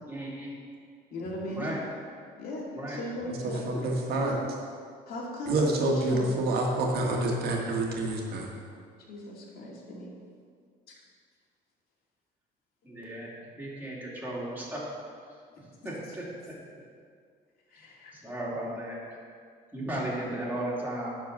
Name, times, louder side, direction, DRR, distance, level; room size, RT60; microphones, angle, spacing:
voice 1, 0.1-0.5 1.6-1.8 2.7-3.0 12.8-14.8 15.6-16.5 18.1-19.0 19.7-21.2, right 1 dB, 10° right, -5 dB, 2.7 m, -35 dB
voice 2, 1.1-1.7 2.4-4.4 5.1-6.3 9.1-10.1 16.0-16.2 17.7-18.1 19.7-20.1, left 1 dB, 60° left, -3 dB, 2.3 m, -38 dB
voice 3, 3.6-4.3 5.5-8.5, right 2 dB, 70° right, 0 dB, 1.8 m, -27 dB
10.0 x 4.6 x 6.7 m, 2.1 s
cardioid pair, 110°, 17 cm